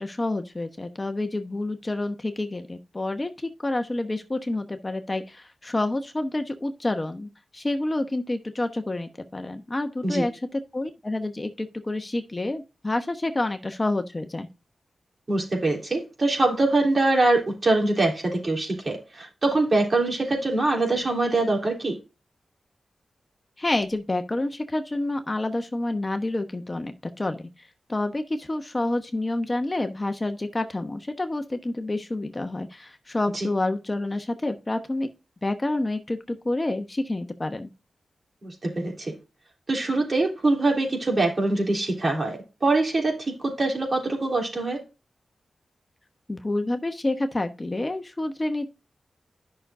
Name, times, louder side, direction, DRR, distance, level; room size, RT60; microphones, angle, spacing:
voice 1, 0.0-3.3 3.6-14.5 23.6-27.4 27.9-35.1 35.4-37.7 46.3-48.7, left 2 dB, 30° left, 1.0 m, -28 dB
voice 2, 15.3-21.9 33.3-33.5 38.4-39.1 39.7-44.8, right 2 dB, 45° right, 3.4 m, -24 dB
11.0 x 6.2 x 2.6 m
cardioid pair, 60°, 0 cm